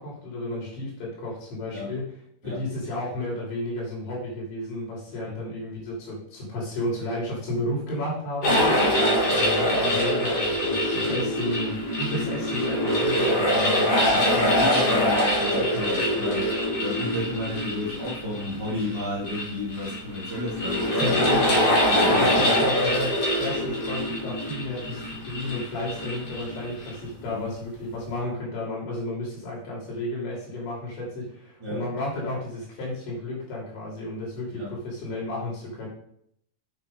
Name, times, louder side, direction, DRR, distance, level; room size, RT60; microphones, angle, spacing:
voice 1, 0.0-2.0 2.4-8.8 9.3-13.9 20.9-21.8 22.1-35.9, left 1 dB, 65° left, -4 dB, 5.1 m, -32 dB
sound 1, 8.4-27.0, equal, 30° left, 3.7 m, -24 dB
voice 2, 14.1-16.5 16.8-21.2 21.9-22.5 27.3-27.4 31.6-31.8 34.5-34.7, left 1 dB, 10° right, -7 dB, 1.3 m, -32 dB
8.9 x 6.9 x 5.3 m, 0.69 s
omnidirectional pair, 5.8 m